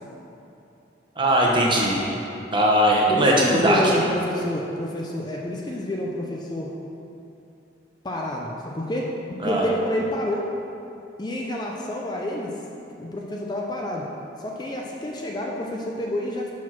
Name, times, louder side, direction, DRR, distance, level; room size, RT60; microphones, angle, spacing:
voice 1, 1.2-2.1 2.5-3.8 9.4-9.6, right 1 dB, 25° right, -3 dB, 1.0 m, -19 dB
voice 2, 3.1-6.7 8.0-9.1 9.4-10.5 11.2-12.6 13.0-14.1 14.4-16.5, left 1 dB, 20° left, -1 dB, 0.5 m, -28 dB
6.2 x 4.7 x 5.8 m, 2.8 s
head